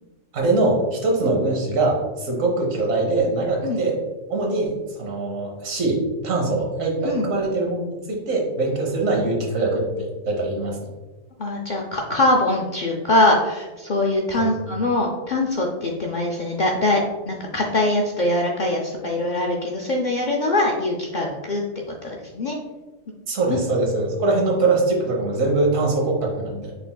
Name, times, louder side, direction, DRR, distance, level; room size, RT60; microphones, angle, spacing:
voice 1, 0.3-4.0 4.3-10.8 14.3-14.5 23.3-26.7, right 2 dB, 85° right, 0 dB, 1.4 m, -22 dB
voice 2, 11.4-22.6 23.5-23.6, left 2 dB, 70° left, -1 dB, 0.4 m, -22 dB
5.7 x 3.5 x 2.2 m, 1.2 s
omnidirectional pair, 1.4 m